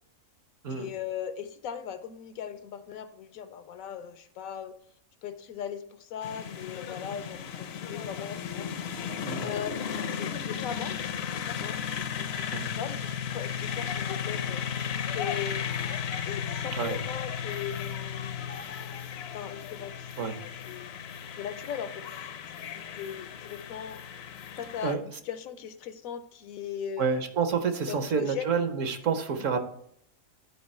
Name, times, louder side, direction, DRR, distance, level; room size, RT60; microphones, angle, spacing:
voice 1, 0.7-4.7 5.2-8.7 9.4-11.0 11.6-12.5 12.8-15.7 16.2-18.7 19.3-20.0 20.7-21.0 21.4-22.1 22.5-24.0 24.6-27.2 27.9-28.4 29.4-29.5, left 8 dB, 85° left, 11 dB, 1.1 m, -39 dB
sound 1, 6.2-25.0, left 8 dB, 60° left, 0.7 m, -35 dB
voice 2, 9.2-9.5 12.5-12.7 16.8-17.0 20.2-20.4 24.8-25.0 27.0-29.6, right 6 dB, 70° right, 8 dB, 1.2 m, -28 dB
10.5 x 4.7 x 4.2 m, 0.67 s
omnidirectional pair, 1.4 m